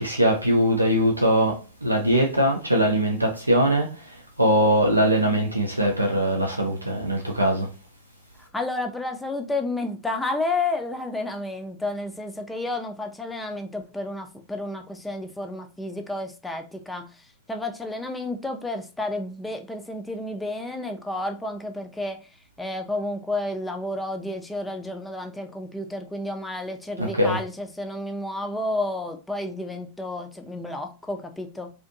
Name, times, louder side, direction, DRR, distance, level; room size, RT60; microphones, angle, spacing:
voice 1, 0.0-3.9 4.4-7.7 27.0-27.4, equal, 85° right, 0.4 m, -21 dB
voice 2, 8.4-17.1 17.5-22.2 22.6-31.7, left 2 dB, 5° left, 0.4 m, -31 dB
2.5 x 2.4 x 2.6 m
figure-of-eight pair, 90°, 0 cm